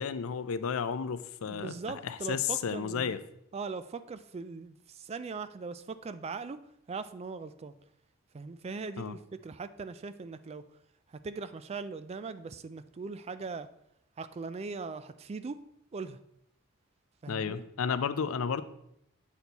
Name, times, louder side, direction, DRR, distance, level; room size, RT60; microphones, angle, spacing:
voice 1, 0.0-3.2 9.0-9.2 17.3-18.6, left 6 dB, 75° left, 13 dB, 0.5 m, -32 dB
voice 2, 1.5-3.2 3.5-6.6 6.9-7.7 8.3-10.6 11.1-13.7 14.2-15.6 15.9-16.2 17.2-17.6, right 4 dB, 30° right, 13 dB, 0.3 m, -40 dB
8.0 x 4.4 x 4.0 m, 0.77 s
head